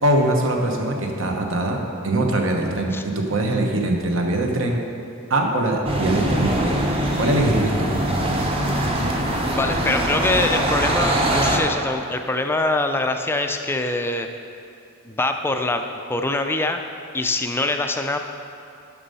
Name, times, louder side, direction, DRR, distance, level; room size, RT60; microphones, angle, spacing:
voice 1, 0.0-1.8 2.0-4.8 5.3-6.8 7.2-7.9, right 1 dB, 65° right, 2 dB, 1.0 m, -22 dB
sound 1, 5.8-11.6, right 1 dB, 25° right, 0.8 m, -22 dB
voice 2, 9.5-14.3 15.0-16.8 17.1-18.2, left 2 dB, 10° left, 6 dB, 0.3 m, -24 dB
7.0 x 6.2 x 5.4 m, 2.6 s
head